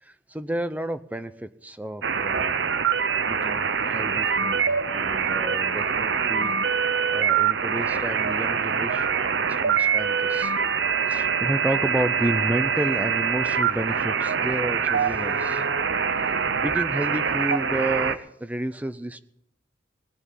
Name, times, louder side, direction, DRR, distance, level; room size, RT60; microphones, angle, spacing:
voice 1, 0.0-2.6 3.3-6.5 7.1-10.6 11.1-15.7 16.6-19.2, right 1 dB, 10° right, 12 dB, 0.6 m, -31 dB
sound 1, 2.0-18.2, right 6 dB, 65° right, 0.8 m, -24 dB
19.0 x 6.9 x 9.0 m, 0.74 s
head